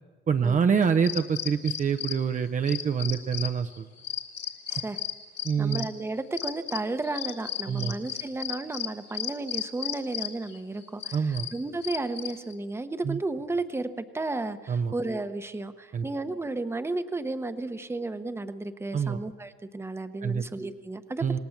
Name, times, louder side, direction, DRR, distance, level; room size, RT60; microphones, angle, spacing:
voice 1, 0.3-3.9 5.4-5.9 7.7-8.0 11.1-11.5 13.0-13.2 14.7-14.9 15.9-16.1 18.9-19.2 20.2-20.4 21.2-21.4, right 6 dB, 40° right, 7 dB, 0.8 m, -26 dB
sound 1, 0.8-12.5, left 11 dB, 55° left, 2.7 m, -35 dB
voice 2, 4.7-5.0 5.6-21.2, right 2 dB, 10° right, 9 dB, 1.0 m, -33 dB
28.0 x 19.0 x 7.3 m, 1.3 s
cardioid pair, 155°, 20 cm